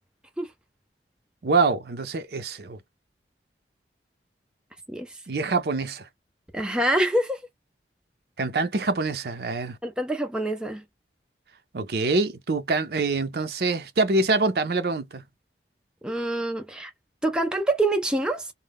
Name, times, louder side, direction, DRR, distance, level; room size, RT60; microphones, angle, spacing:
voice 1, 1.4-2.8 5.3-6.1 8.4-9.8 11.7-15.2, right 3 dB, 60° right, 0.6 m, -25 dB
voice 2, 6.5-7.4 9.8-10.8 16.0-16.9 17.2-18.5, right 1 dB, 5° right, 0.3 m, -26 dB
2.1 x 2.0 x 3.5 m
head